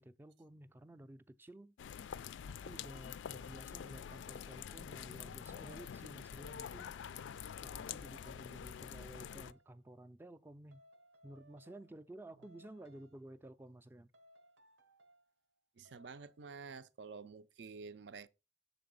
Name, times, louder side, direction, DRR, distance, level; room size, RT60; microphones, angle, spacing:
voice 1, 0.0-1.8 2.5-6.9 7.6-10.8 11.2-14.1, right 1 dB, 10° right, 0.3 m, -53 dB
sound 1, 1.8-9.5, left 8 dB, 85° left, 0.3 m, -46 dB
sound 2, 7.3-8.5 9.0-9.7 10.7-12.1 12.4-13.3 14.1-15.3 15.9-16.4, equal, 85° right, 0.9 m, -65 dB
voice 2, 15.8-18.3, right 5 dB, 70° right, 0.5 m, -50 dB
6.8 x 3.9 x 5.2 m
head